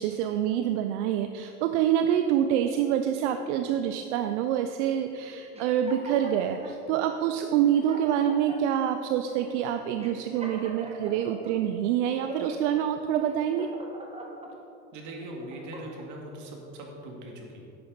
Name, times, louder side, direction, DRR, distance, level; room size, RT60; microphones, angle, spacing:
voice 1, 0.0-13.7, right 10 dB, 80° right, 8 dB, 0.6 m, -26 dB
sound 1, 5.5-6.8 7.4-7.5 7.7-8.8 9.4-9.5 10.0-11.5 12.0-12.7 13.2-14.5 15.1-16.1, right 1 dB, 20° right, 1.5 m, -42 dB
voice 2, 14.9-17.7, right 1 dB, 55° right, 1 dB, 2.1 m, -41 dB
10.5 x 8.3 x 4.0 m, 2.9 s
supercardioid pair, 95°, 35 cm